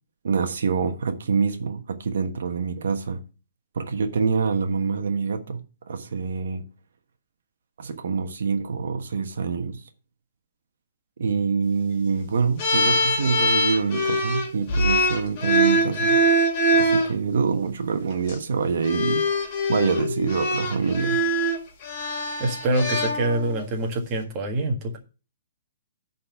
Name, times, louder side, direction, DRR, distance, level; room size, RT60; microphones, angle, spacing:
voice 1, 0.2-3.2 3.7-6.6 7.8-9.8 11.2-16.2 16.7-19.2 19.7-21.2, right 5 dB, 70° right, 1.3 m, -25 dB
sound 1, 12.6-17.1 18.1-18.3 18.8-23.7, equal, 30° left, 2.3 m, -23 dB
voice 2, 22.4-25.0, right 1 dB, 20° right, 1.6 m, -25 dB
10.0 x 4.2 x 6.9 m
hypercardioid pair, 170°, 0 cm